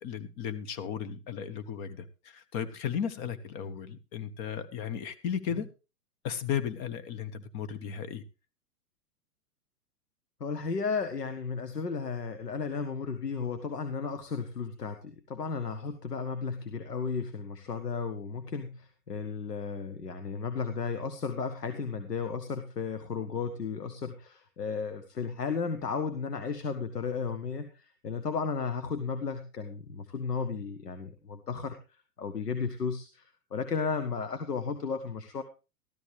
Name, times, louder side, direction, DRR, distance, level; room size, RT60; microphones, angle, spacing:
voice 1, 0.0-5.7 6.2-8.2, left 8 dB, 40° left, 12 dB, 1.6 m, -35 dB
voice 2, 10.4-31.8 32.2-33.2 33.5-35.4, left 5 dB, 85° left, 9 dB, 1.5 m, -34 dB
14.0 x 13.0 x 3.3 m, 0.30 s
hypercardioid pair, 110°, 46 cm